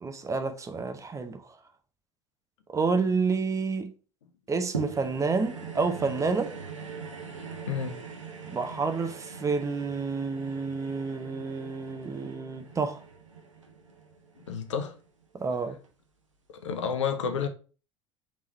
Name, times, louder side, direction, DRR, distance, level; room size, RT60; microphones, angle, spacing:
voice 1, 0.0-1.4 2.7-3.9 4.5-6.5 8.5-13.0 15.4-15.8, right 4 dB, 20° right, 0.6 m, -29 dB
sound 1, 4.7-15.2 15.8-15.9, right 5 dB, 85° right, 0.7 m, -42 dB
voice 2, 7.6-8.0 11.4-11.5 14.5-15.0 16.5-17.5, left 6 dB, 75° left, 0.6 m, -30 dB
3.5 x 3.1 x 4.2 m
figure-of-eight pair, 70°, 16 cm